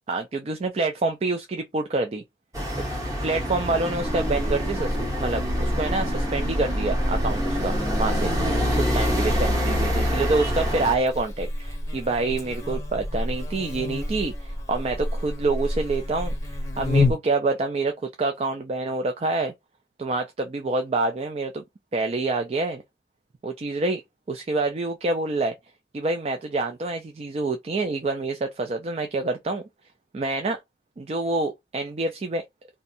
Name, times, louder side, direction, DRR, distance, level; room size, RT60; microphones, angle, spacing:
voice 1, 0.1-2.2 2.8-2.9 3.2-8.3 8.8-16.3 16.8-19.5 20.0-21.6 21.9-22.8 23.4-24.0 24.3-25.5 25.9-29.6 30.1-30.6 31.0-32.4, right 3 dB, 35° right, 0.4 m, -27 dB
sound 1, 2.5-10.9, equal, 20° right, 1.0 m, -26 dB
Buzz, 4.0-17.1, left 1 dB, 15° left, 0.7 m, -29 dB
2.6 x 2.2 x 4.1 m
head